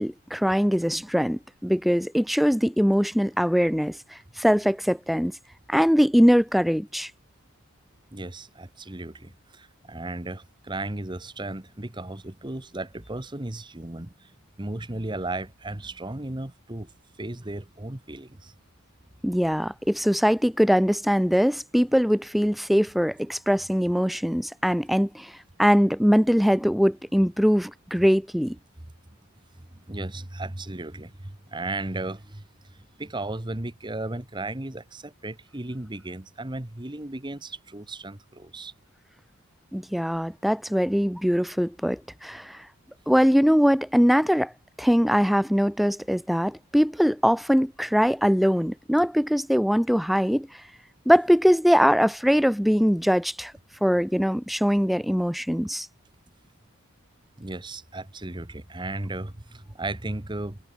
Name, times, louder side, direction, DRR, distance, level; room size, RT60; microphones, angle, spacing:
voice 1, 0.0-5.4 5.7-7.1 19.2-28.6 39.7-42.7 43.1-44.5 44.8-50.6 51.1-53.5 53.8-55.9, equal, ahead, 0.4 m, -22 dB
voice 2, 8.1-14.3 14.6-16.9 17.2-18.5 29.7-38.7 57.4-60.6, right 2 dB, 20° right, 1.2 m, -35 dB
head